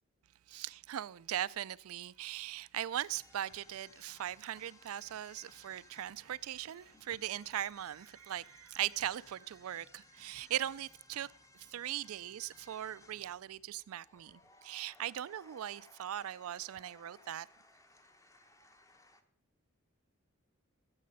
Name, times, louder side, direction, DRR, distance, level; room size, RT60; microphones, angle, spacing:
voice 1, 0.5-11.3 11.5-17.5, right 11 dB, 85° right, 0.4 m, -39 dB
sound 1, 2.9-19.2, left 1 dB, 15° left, 0.7 m, -62 dB
14.5 x 7.6 x 5.4 m
head